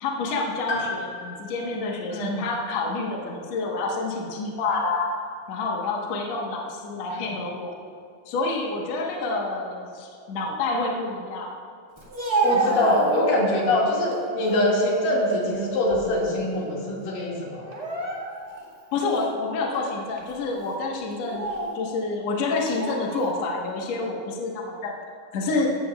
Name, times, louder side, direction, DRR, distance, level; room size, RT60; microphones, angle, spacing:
voice 1, 0.0-5.2 5.5-7.8 8.3-11.5 18.9-21.5 21.7-24.9 25.3-25.7, left 3 dB, 60° left, -1 dB, 2.2 m, -28 dB
Piano, 0.7-4.8 6.1-6.2, left 4 dB, 35° left, 2.1 m, -38 dB
Speech, 12.0-13.6 14.1-14.7 15.1-16.3 16.6-16.8 17.6-18.6 19.2-19.3 20.1-20.3 21.1-21.8 22.7-23.4, right 3 dB, 25° right, 0.8 m, -29 dB
voice 2, 12.4-17.6, left 1 dB, 85° left, -4 dB, 3.7 m, -23 dB
16.0 x 12.5 x 2.3 m, 2.4 s
omnidirectional pair, 3.8 m